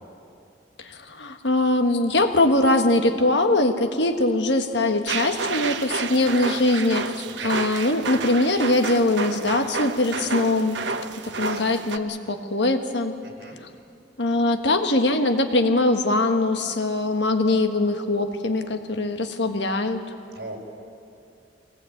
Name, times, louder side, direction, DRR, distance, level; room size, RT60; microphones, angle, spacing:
voice 1, 0.8-10.8 11.4-13.1 14.2-20.0, left 2 dB, 75° left, 6 dB, 1.6 m, -22 dB
sound 1, 5.1-12.0, right 4 dB, 80° right, 1.0 m, -30 dB
voice 2, 11.4-11.7 13.2-13.6 20.3-20.6, right 2 dB, 65° right, 0 dB, 4.7 m, -39 dB
23.0 x 18.5 x 8.7 m, 2.6 s
head